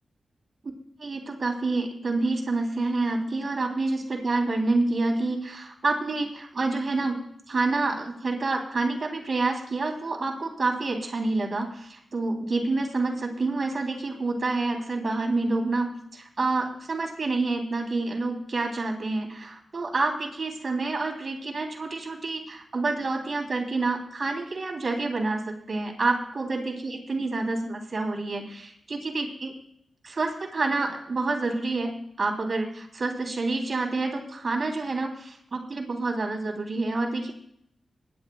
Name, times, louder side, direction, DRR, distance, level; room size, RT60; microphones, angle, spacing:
voice 1, 1.0-7.2 7.5-29.5 30.0-31.9 32.2-37.3, right 3 dB, 55° right, 2 dB, 3.2 m, -28 dB
23.0 x 11.0 x 2.3 m, 0.70 s
cardioid pair, 50°, 0 cm